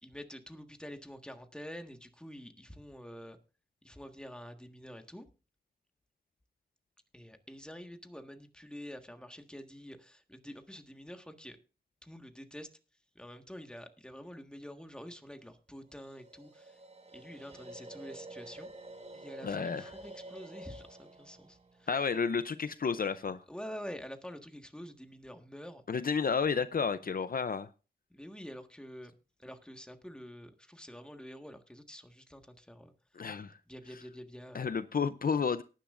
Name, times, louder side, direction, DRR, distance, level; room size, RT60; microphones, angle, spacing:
voice 1, 0.0-3.4 3.8-5.2 7.1-11.6 12.0-12.7 13.1-16.8 17.1-18.7 19.1-21.9 23.5-25.8 28.1-29.1 29.4-32.9 33.7-34.7, equal, 5° left, 5 dB, 1.6 m, -47 dB
sound 1, 15.9-23.0, right 1 dB, 40° right, 2.8 m, -50 dB
voice 2, 19.4-19.8 21.9-23.4 25.9-27.7 33.2-33.6 34.5-35.6, left 5 dB, 55° left, 13 dB, 0.6 m, -31 dB
18.5 x 10.0 x 2.5 m, 0.33 s
wide cardioid pair, 105°, 17 cm